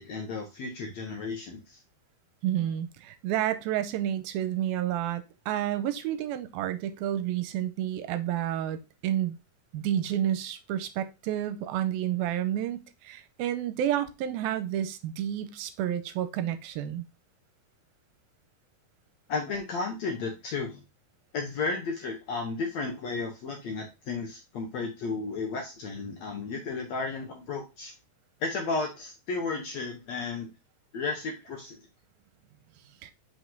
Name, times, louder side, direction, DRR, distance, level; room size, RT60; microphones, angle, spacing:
voice 1, 0.0-1.8 19.3-20.8 21.3-27.9 28.4-30.5 30.9-31.8, left 4 dB, 70° left, 1.7 m, -33 dB
voice 2, 2.4-9.4 9.7-17.0 33.0-33.1, right 11 dB, 85° right, 2.4 m, -30 dB
5.9 x 5.1 x 3.8 m
omnidirectional pair, 4.4 m